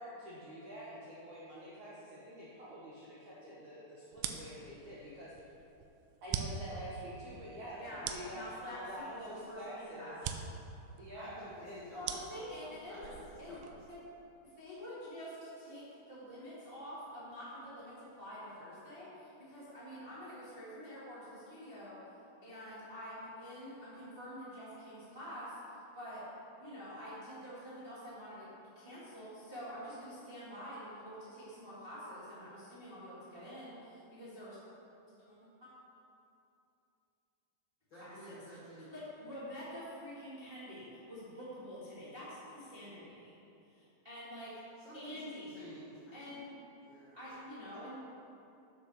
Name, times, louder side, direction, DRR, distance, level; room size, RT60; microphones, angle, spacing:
voice 1, 0.0-5.3 6.2-8.4 8.7-10.2 11.0-11.9, equal, 70° right, -7 dB, 1.8 m, -47 dB
sound 1, 4.1-14.0, right 8 dB, 85° right, 2.9 m, -44 dB
voice 2, 7.8-10.2 11.9-13.1 13.4-13.6 13.9-14.0 14.4-22.0 22.4-26.3 26.6-34.6 35.3-35.7 38.0-38.4 38.9-43.3 43.7-44.5 44.9-45.6 46.1-46.6 47.1-47.9, equal, 35° right, -11 dB, 0.9 m, -47 dB
voice 3, 11.1-13.1 13.5-13.7 37.9-38.9 44.8-45.2 45.5-46.3 46.8-47.2, equal, 45° left, -10 dB, 1.6 m, -52 dB
7.8 x 7.1 x 6.3 m, 2.8 s
omnidirectional pair, 5.2 m